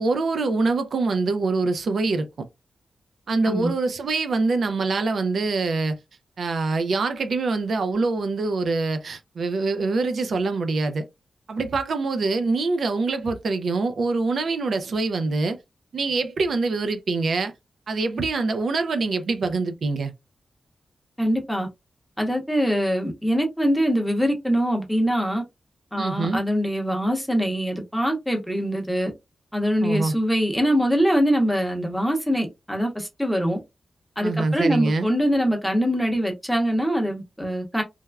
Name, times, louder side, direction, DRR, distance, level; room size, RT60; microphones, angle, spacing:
voice 1, 0.0-2.5 3.3-6.0 6.4-11.1 11.5-15.6 15.9-17.5 17.9-20.1 26.0-26.4 29.8-30.1 34.2-35.1, right 3 dB, 70° right, 0.4 m, -24 dB
voice 2, 21.2-21.7 22.2-25.4 25.9-29.1 29.5-33.6 34.2-37.8, equal, ahead, 0.8 m, -23 dB
3.3 x 2.1 x 2.2 m
wide cardioid pair, 135°, 0 cm